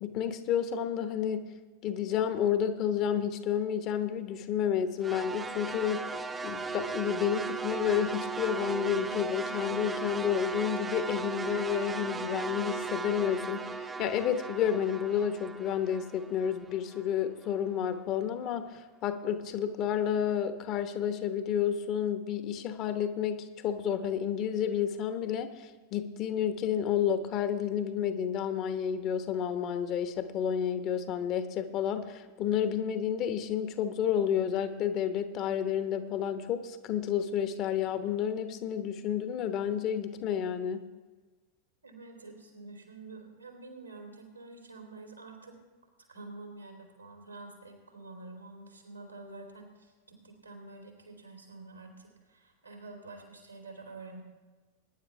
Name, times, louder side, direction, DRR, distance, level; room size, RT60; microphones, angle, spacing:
voice 1, 0.0-1.5 1.8-6.1 6.4-40.8, left 9 dB, 35° left, 10 dB, 1.0 m, -30 dB
sound 1, 5.0-17.3, right 5 dB, 15° right, 0.8 m, -37 dB
voice 2, 41.8-45.5 46.1-54.2, right 3 dB, 85° right, 1 dB, 3.2 m, -48 dB
22.0 x 10.5 x 3.5 m, 1.3 s
figure-of-eight pair, 90°, 0 cm